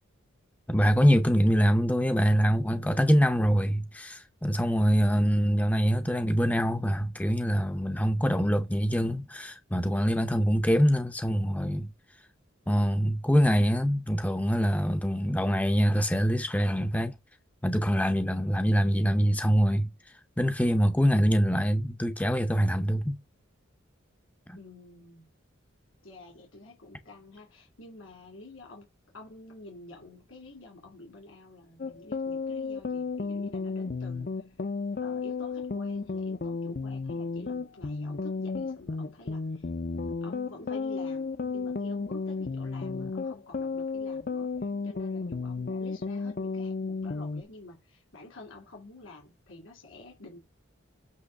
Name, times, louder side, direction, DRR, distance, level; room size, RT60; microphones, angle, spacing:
voice 1, 0.7-11.9 12.7-17.2 17.6-19.9 20.4-23.2 24.5-24.6, equal, 5° left, 0.6 m, -24 dB
voice 2, 24.5-25.3 26.0-28.9 29.1-34.7 35.0-39.7 40.2-50.4, left 2 dB, 75° left, 2.7 m, -49 dB
sound 1, 31.8-47.4, left 4 dB, 45° left, 0.6 m, -33 dB
8.3 x 3.1 x 6.3 m
head